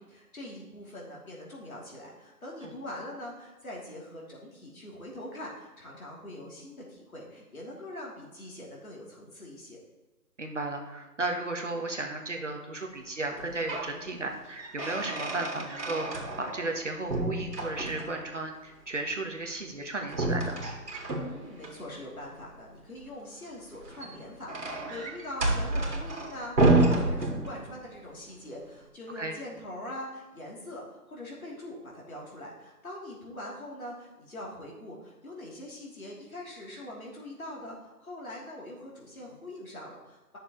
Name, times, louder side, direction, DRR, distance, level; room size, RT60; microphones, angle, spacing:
voice 1, 0.0-9.8 21.2-40.4, left 1 dB, 60° left, -3 dB, 3.1 m, -43 dB
voice 2, 10.4-20.6 29.1-29.4, right 2 dB, 50° right, 2 dB, 1.2 m, -34 dB
sound 1, 13.3-14.0 14.3-16.8 17.1-18.3 20.1-21.7 23.7-27.9, right 2 dB, 80° right, 2.2 m, -29 dB
11.0 x 6.6 x 3.1 m, 1.2 s
figure-of-eight pair, 175°, 48 cm